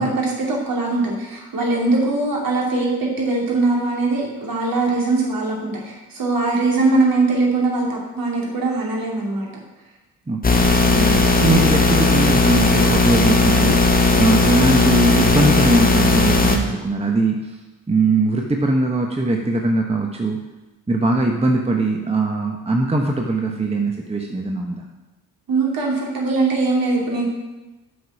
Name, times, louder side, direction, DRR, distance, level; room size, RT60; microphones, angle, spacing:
voice 1, 0.0-9.5 10.9-11.3 25.5-27.3, right 3 dB, 50° right, -2 dB, 2.8 m, -21 dB
voice 2, 10.3-17.6 17.9-20.4 20.9-24.8, right 2 dB, 15° right, 2 dB, 1.1 m, -21 dB
sound 1, 10.4-16.6, left 3 dB, 20° left, 1.2 m, -16 dB
7.8 x 5.3 x 6.0 m, 1.1 s
hypercardioid pair, 45°, 44 cm